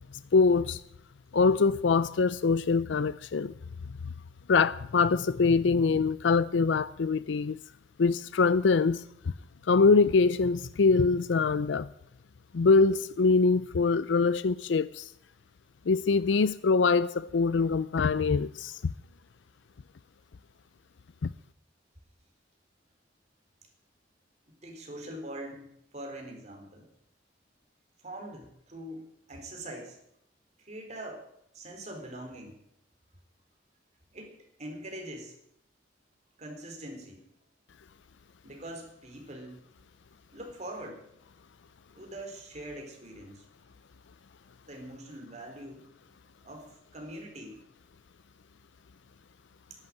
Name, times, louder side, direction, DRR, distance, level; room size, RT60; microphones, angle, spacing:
voice 1, 0.3-0.8 1.3-3.5 4.5-7.6 8.0-9.3 9.7-11.9 12.5-15.1 15.9-18.8 21.2-21.3, left 4 dB, 75° left, 0.5 m, -24 dB
voice 2, 24.6-26.9 28.0-30.0 30.6-31.2 31.5-32.6 34.1-35.3 36.4-37.3 38.4-39.6 40.3-41.0 42.0-43.4 44.6-45.9 46.4-47.6, right 1 dB, 40° right, 4.1 m, -43 dB
11.5 x 10.5 x 9.0 m
head